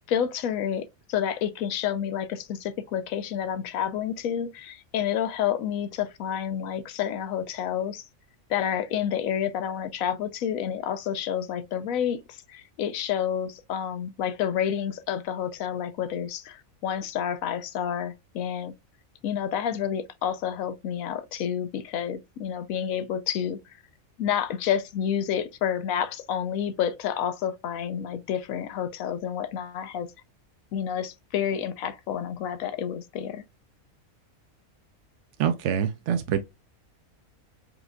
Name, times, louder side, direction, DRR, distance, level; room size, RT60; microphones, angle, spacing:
voice 1, 0.1-8.0 8.5-18.7 19.2-23.8 24.2-30.1 30.7-33.4, left 9 dB, 85° left, 1.0 m, -29 dB
voice 2, 35.4-36.4, right 8 dB, 65° right, 0.8 m, -25 dB
4.8 x 3.9 x 2.2 m
omnidirectional pair, 1.4 m